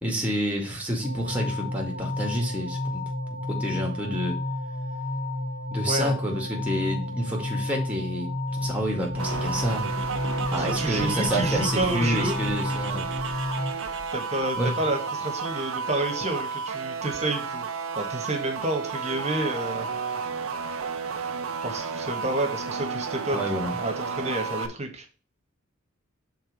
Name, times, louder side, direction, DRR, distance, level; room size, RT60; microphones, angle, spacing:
voice 1, 0.0-3.0 3.5-4.4 5.7-9.9 10.5-13.1 14.6-14.7 23.3-23.8, equal, 5° right, 0 dB, 1.9 m, -29 dB
sound 1, 1.0-13.7, left 1 dB, 80° left, 1.8 m, -31 dB
voice 2, 5.9-6.2 10.5-12.4 14.1-17.7 17.9-19.9 21.6-23.4 23.8-25.0, right 2 dB, 30° right, 4 dB, 1.5 m, -29 dB
sound 2, 8.5-14.6, right 3 dB, 60° right, 1.1 m, -39 dB
sound 3, 9.2-24.7, right 5 dB, 85° right, 0.7 m, -32 dB
5.9 x 3.9 x 5.2 m, 0.35 s
head